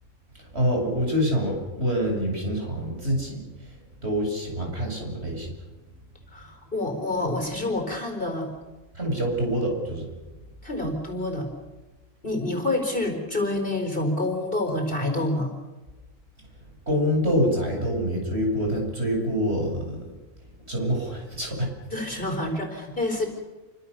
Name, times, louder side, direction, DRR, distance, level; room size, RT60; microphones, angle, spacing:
voice 1, 0.5-3.7 4.0-5.5 8.9-10.1 16.9-20.0 20.7-21.7, equal, 50° right, 1 dB, 8.0 m, -26 dB
voice 2, 6.3-8.5 10.6-11.5 12.2-15.5 21.9-23.3, left 2 dB, 40° left, 4 dB, 4.8 m, -27 dB
29.0 x 25.0 x 6.8 m, 1.2 s
omnidirectional pair, 1.4 m